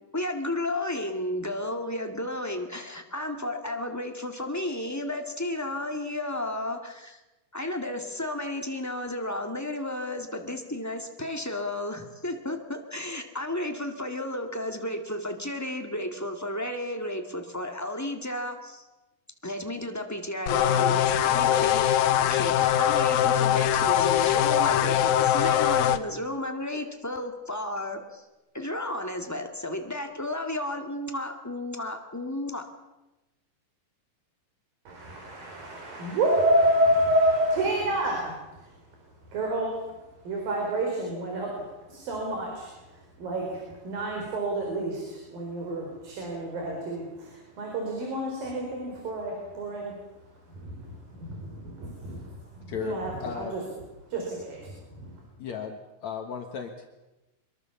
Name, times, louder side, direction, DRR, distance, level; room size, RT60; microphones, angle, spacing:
voice 1, 0.1-7.2 7.5-18.8 19.4-28.2 28.5-32.7, left 1 dB, 10° left, 4 dB, 0.8 m, -33 dB
sound 1, 20.5-26.0, left 10 dB, 85° left, 2.7 m, -22 dB
voice 2, 34.9-38.7 39.3-39.8 40.2-41.5 41.9-49.9 50.5-53.6 54.1-55.1, right 1 dB, 80° right, 0 dB, 6.2 m, -29 dB
voice 3, 52.7-53.5 55.4-56.9, left 6 dB, 60° left, 4 dB, 2.6 m, -35 dB
24.5 x 23.0 x 7.1 m, 1.0 s
omnidirectional pair, 4.0 m